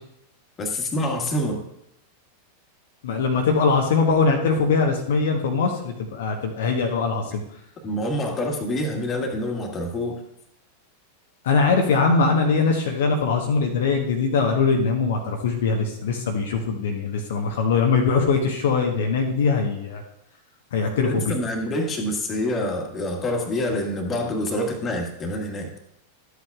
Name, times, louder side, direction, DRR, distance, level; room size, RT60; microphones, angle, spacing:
voice 1, 0.6-1.6 7.8-10.2 21.0-25.7, left 1 dB, 25° left, 3 dB, 1.8 m, -26 dB
voice 2, 3.0-7.4 11.4-20.0 20.7-21.2, left 4 dB, 60° left, 2 dB, 1.1 m, -22 dB
13.0 x 8.1 x 2.4 m, 0.77 s
figure-of-eight pair, 90°, 0 cm